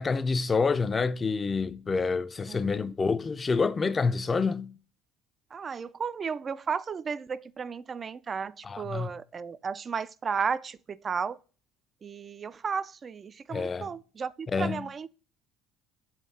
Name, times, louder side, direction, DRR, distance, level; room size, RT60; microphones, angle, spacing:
voice 1, 0.0-4.7 8.6-9.1 13.5-13.9 14.5-14.9, left 4 dB, 25° left, 0.5 m, -27 dB
voice 2, 2.5-2.9 5.5-11.4 12.0-15.1, right 6 dB, 35° right, 0.4 m, -34 dB
7.2 x 2.7 x 5.4 m
supercardioid pair, 85°, 0 cm